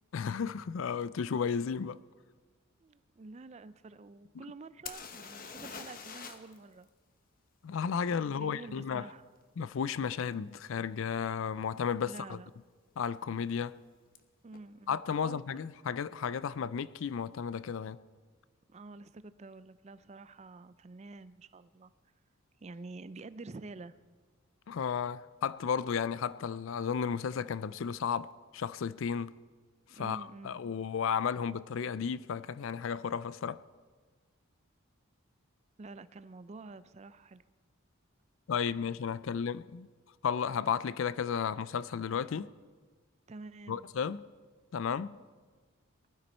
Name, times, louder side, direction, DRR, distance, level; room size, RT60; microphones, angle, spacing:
voice 1, 0.1-2.0 7.6-9.0 9.6-12.4 13.0-13.8 14.9-18.0 24.7-29.3 29.9-33.6 38.5-39.9 40.2-42.5 43.7-44.2 44.7-45.2, left 7 dB, 65° left, 0.4 m, -33 dB
voice 2, 2.8-6.9 8.2-9.3 12.0-12.5 14.4-15.4 18.7-21.9 22.6-23.9 29.9-30.6 35.8-37.4 43.3-43.9, right 3 dB, 30° right, 0.4 m, -48 dB
sound 1, 4.9-6.6 6.8-6.9 10.3-10.4 11.1-11.3 11.5-12.1 14.2-14.3 14.5-14.6, left 6 dB, 40° left, 0.9 m, -45 dB
19.5 x 12.5 x 4.4 m
head